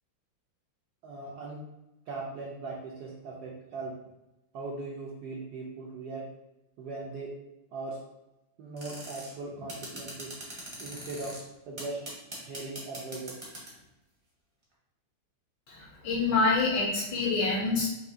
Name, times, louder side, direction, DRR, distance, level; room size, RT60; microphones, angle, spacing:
voice 1, 1.0-1.6 2.1-3.9 4.5-6.2 6.8-7.3 7.7-8.0 8.6-10.3 10.8-11.3 11.7-12.0 12.4-13.4, right 3 dB, 70° right, -4 dB, 1.0 m, -39 dB
sound 1, 8.8-9.3 9.7-11.4 11.8-13.8, right 1 dB, 30° right, 0.5 m, -41 dB
voice 2, 15.7-17.9, left 3 dB, 65° left, -1 dB, 1.2 m, -26 dB
4.9 x 2.7 x 2.6 m, 0.95 s
omnidirectional pair, 2.3 m